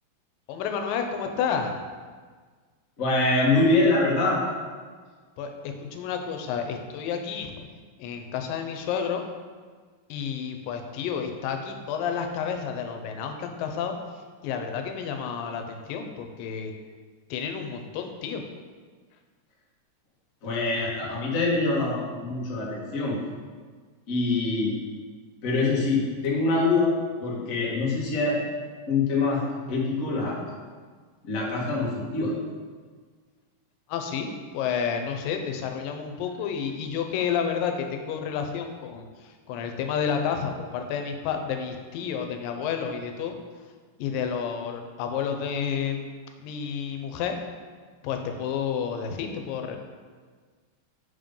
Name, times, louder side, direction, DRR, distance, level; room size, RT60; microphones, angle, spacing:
voice 1, 0.5-1.7 5.4-7.7 8.0-9.2 10.1-13.9 14.4-16.7 17.3-18.4 33.9-43.3 44.0-46.0 46.4-47.4 48.0-49.8, left 7 dB, 90° left, 5 dB, 2.3 m, -30 dB
voice 2, 3.0-4.4 20.4-23.2 24.1-24.7 25.4-28.4 28.9-30.4 31.2-32.3, left 3 dB, 75° left, -4 dB, 0.7 m, -24 dB
7.3 x 3.7 x 5.3 m, 1.5 s
omnidirectional pair, 3.9 m